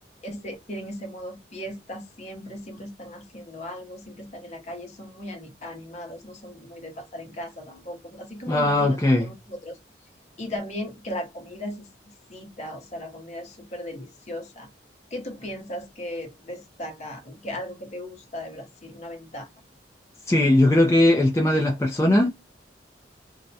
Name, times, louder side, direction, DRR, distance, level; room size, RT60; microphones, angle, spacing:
voice 1, 0.2-9.8 10.4-11.9 12.3-14.7 15.1-19.5, left 1 dB, 40° left, 0.8 m, -37 dB
voice 2, 8.5-9.3 20.3-22.3, left 1 dB, 15° left, 0.4 m, -19 dB
2.3 x 2.1 x 2.6 m
head